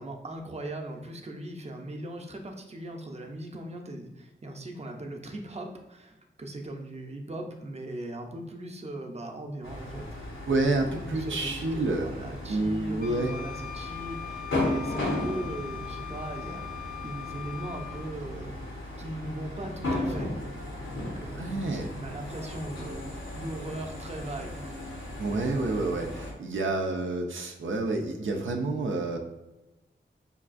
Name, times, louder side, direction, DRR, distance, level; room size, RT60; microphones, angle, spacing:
voice 1, 0.0-10.1 10.8-20.3 20.9-24.6, right 1 dB, 35° right, 2 dB, 0.6 m, -39 dB
sound 1, 9.6-26.3, left 1 dB, 90° left, 0.8 m, -36 dB
voice 2, 10.5-13.3 21.4-21.9 25.2-29.2, right 2 dB, 85° right, 2 dB, 0.5 m, -29 dB
Wind instrument woodwind instrument, 13.0-18.1, left 10 dB, 45° left, 0.6 m, -41 dB
5.2 x 2.3 x 2.5 m, 1.0 s
wide cardioid pair, 55°, 20 cm